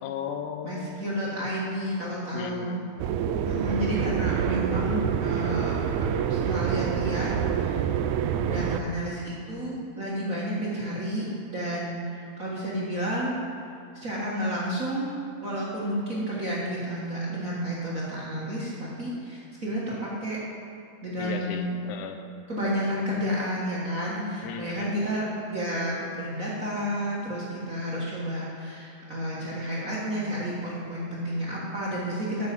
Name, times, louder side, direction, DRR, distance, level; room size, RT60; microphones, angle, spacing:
voice 1, 0.0-1.0 2.3-2.9 21.2-22.3 24.4-24.9, left 7 dB, 85° left, 7 dB, 2.1 m, -36 dB
voice 2, 0.6-2.8 3.4-5.7 6.3-7.3 7.6-7.8 8.5-13.4 13.9-15.1 15.4-20.4 21.0-21.8 22.5-32.5, equal, 40° right, -7 dB, 1.2 m, -31 dB
sound 1, 3.0-8.8, right 8 dB, 80° right, 1.8 m, -27 dB
9.6 x 6.4 x 7.4 m, 2.5 s
omnidirectional pair, 3.5 m